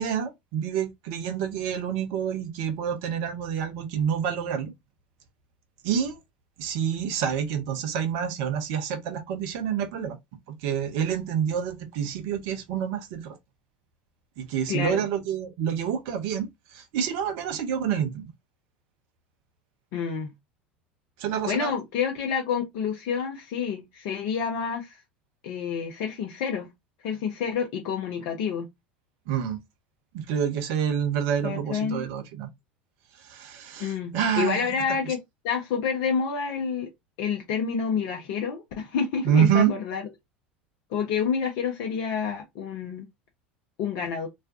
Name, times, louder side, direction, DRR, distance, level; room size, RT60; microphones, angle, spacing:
voice 1, 0.0-4.7 5.8-6.2 6.6-10.2 10.5-13.4 14.4-18.3 21.2-21.7 29.3-29.6 30.1-32.5 33.2-34.6 39.2-39.7, right 8 dB, 55° right, 0.6 m, -27 dB
voice 2, 14.7-15.0 19.9-20.3 21.5-25.0 25.4-26.7 27.0-28.7 31.4-32.0 33.8-35.2 35.4-36.9 37.2-40.0 40.9-43.1 43.8-44.3, left 6 dB, 55° left, 0.6 m, -28 dB
2.4 x 2.2 x 2.4 m
figure-of-eight pair, 75°, 6 cm